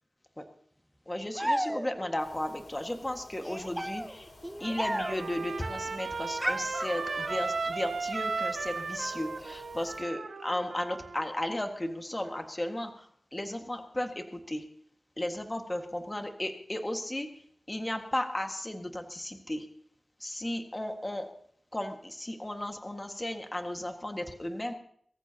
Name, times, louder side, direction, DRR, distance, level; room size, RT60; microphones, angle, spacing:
voice 1, 1.1-4.3 4.6-14.6 15.2-17.3 17.7-19.7 20.2-21.3 21.7-24.7, left 1 dB, 20° left, 5 dB, 1.7 m, -35 dB
sound 1, 1.3-2.2 3.4-5.4 6.4-7.5, equal, 5° right, 0.6 m, -34 dB
sound 2, 2.2-10.0, left 2 dB, 75° left, 5.1 m, -51 dB
Trumpet, 4.6-11.3, right 4 dB, 90° right, 1.4 m, -35 dB
24.5 x 14.0 x 2.8 m, 0.63 s
wide cardioid pair, 90°, 0 cm